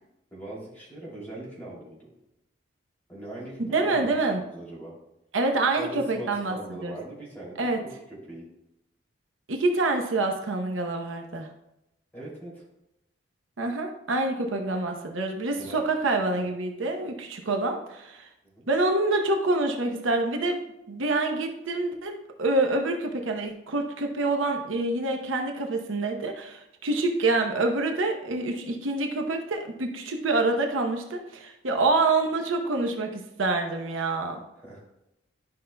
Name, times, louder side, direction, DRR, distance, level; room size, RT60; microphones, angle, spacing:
voice 1, 0.3-2.1 3.1-4.9 5.8-7.7 8.3-8.5 12.1-12.6 15.5-15.8 18.4-18.7 31.8-31.9 34.5-34.8, right 1 dB, 10° left, -6 dB, 2.7 m, -40 dB
voice 2, 3.6-4.4 5.3-6.9 7.6-7.8 9.5-11.5 13.6-18.3 18.7-20.6 20.9-34.4, right 2 dB, 80° right, 3 dB, 0.8 m, -26 dB
11.5 x 5.4 x 2.2 m, 0.87 s
head